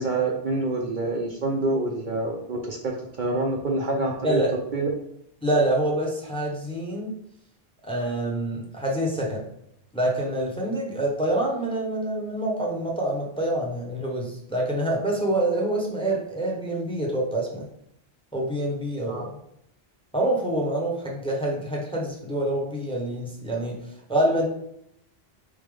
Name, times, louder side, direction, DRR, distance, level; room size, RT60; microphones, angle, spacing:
voice 1, 0.0-4.4 4.7-4.9 19.1-19.3, right 2 dB, 55° right, 0 dB, 0.7 m, -27 dB
voice 2, 5.4-7.1 7.8-9.4 9.9-17.7 18.3-19.3 20.1-23.8 24.1-24.4, right 1 dB, 5° left, -2 dB, 0.8 m, -26 dB
4.1 x 3.6 x 3.4 m, 0.74 s
omnidirectional pair, 1.1 m